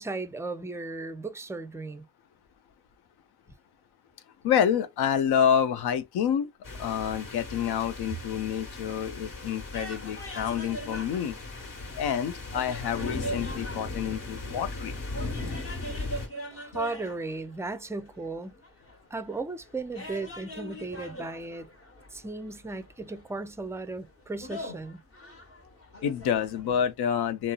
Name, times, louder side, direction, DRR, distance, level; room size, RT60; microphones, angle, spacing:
voice 1, 0.0-2.1 16.5-18.6 19.1-21.7 22.1-25.0, right 3 dB, 10° right, 0.3 m, -36 dB
voice 2, 4.4-6.5 6.8-11.4 11.9-14.9 26.0-27.5, left 8 dB, 80° left, 0.5 m, -28 dB
sound 1, 6.6-16.3, left 2 dB, 55° left, 1.2 m, -38 dB
sound 2, 9.7-26.9, equal, 35° left, 1.0 m, -43 dB
2.6 x 2.0 x 2.3 m
cardioid pair, 60°, 38 cm